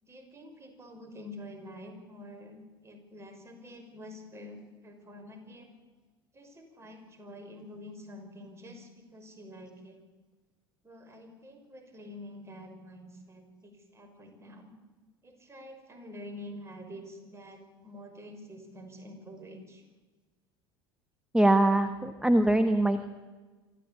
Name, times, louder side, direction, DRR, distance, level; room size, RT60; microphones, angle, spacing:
voice 1, 0.0-5.7 6.3-10.0 10.8-14.7 15.2-19.8, left 1 dB, 20° right, 4 dB, 6.1 m, -47 dB
voice 2, 21.3-23.1, right 1 dB, 5° right, 9 dB, 1.4 m, -23 dB
25.5 x 14.5 x 8.7 m, 1.3 s
figure-of-eight pair, 70°, 13 cm